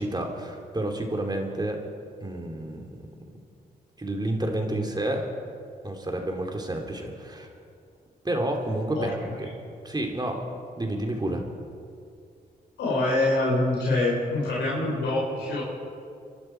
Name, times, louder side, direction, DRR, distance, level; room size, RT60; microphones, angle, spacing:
voice 1, 0.0-1.8 2.2-2.9 4.0-5.2 5.8-7.5 8.2-9.1 9.4-9.5 9.8-10.4 10.8-11.5, right 1 dB, 20° right, 2 dB, 3.1 m, -29 dB
voice 2, 12.8-15.6, left 2 dB, 85° left, -4 dB, 4.6 m, -25 dB
25.5 x 12.0 x 4.7 m, 2.4 s
supercardioid pair, 55°, 18 cm